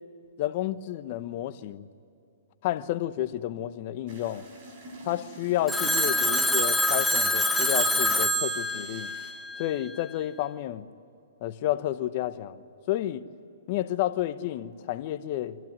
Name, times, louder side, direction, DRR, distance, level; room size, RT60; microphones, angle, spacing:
voice 1, 0.4-1.9 2.6-4.5 5.0-9.1 9.6-10.8 11.4-12.6 12.9-13.3 13.7-15.6, left 13 dB, 45° left, 1.1 m, -30 dB
sound 1, 4.1-9.3, right 1 dB, 50° right, 6.5 m, -47 dB
Telephone, 5.7-9.9, equal, 5° left, 1.1 m, -25 dB
25.5 x 15.0 x 9.5 m
hypercardioid pair, 130°, 0 cm